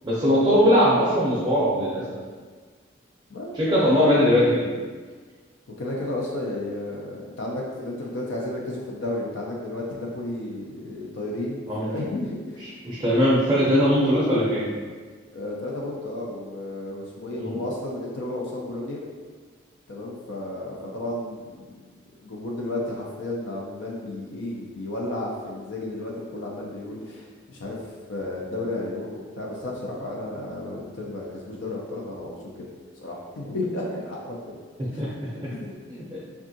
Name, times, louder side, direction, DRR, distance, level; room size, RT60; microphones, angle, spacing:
voice 1, 0.0-2.2 3.5-4.6 11.7-11.9 12.8-14.7 17.3-17.5 35.0-35.5 35.9-36.2, equal, 20° right, -8 dB, 0.5 m, -20 dB
voice 2, 5.8-12.7 15.3-19.0 19.9-21.6 22.2-32.7 33.0-34.6 34.9-35.0 35.5-35.7, left 1 dB, 70° left, -3 dB, 0.5 m, -33 dB
3.5 x 2.3 x 2.6 m, 1.5 s
head